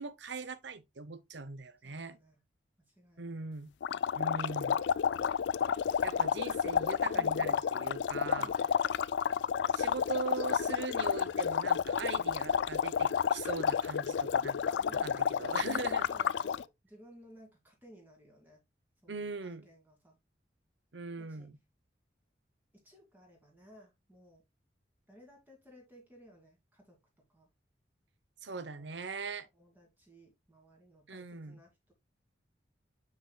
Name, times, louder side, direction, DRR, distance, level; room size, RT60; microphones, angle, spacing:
voice 1, 0.0-2.2 3.2-3.7 4.1-4.8 6.0-8.5 9.7-16.1 19.1-19.7 20.9-21.6 28.4-29.5 31.1-31.6, right 4 dB, 80° right, 0.9 m, -40 dB
voice 2, 1.8-2.4 2.8-3.4 3.9-4.4 5.9-6.2 7.1-7.6 8.4-8.9 9.8-10.7 14.7-15.2 15.9-18.6 19.0-20.2 21.2-21.5 22.8-24.4 25.1-27.5 28.5-29.0 29.5-31.9, equal, 10° right, 2.4 m, -58 dB
sound 1, 3.8-16.6, left 7 dB, 75° left, 0.3 m, -31 dB
7.2 x 6.2 x 2.3 m
head